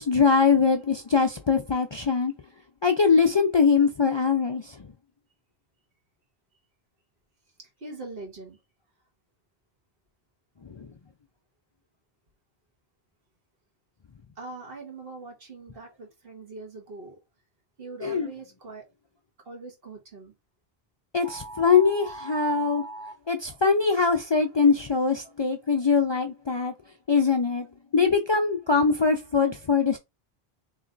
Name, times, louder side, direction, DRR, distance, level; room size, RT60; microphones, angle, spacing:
voice 1, 0.0-2.3 2.8-4.9 10.8-10.9 18.0-18.3 21.1-26.7 27.1-27.7 27.9-30.0, left 5 dB, 45° left, 0.3 m, -22 dB
voice 2, 7.8-8.6 14.4-17.2 17.8-18.9 19.4-20.3, right 3 dB, 65° right, 1.5 m, -42 dB
3.1 x 3.0 x 3.8 m
omnidirectional pair, 1.0 m